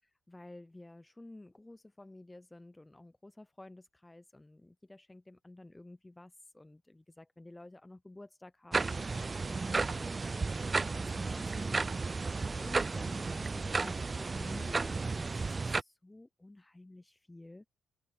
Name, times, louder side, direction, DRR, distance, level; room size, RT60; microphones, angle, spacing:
voice 1, 0.0-17.7, left 2 dB, 10° left, 0.7 m, -52 dB
sound 1, 8.7-15.8, right 4 dB, 25° right, 0.3 m, -33 dB
open air
cardioid pair, 90°, 0 cm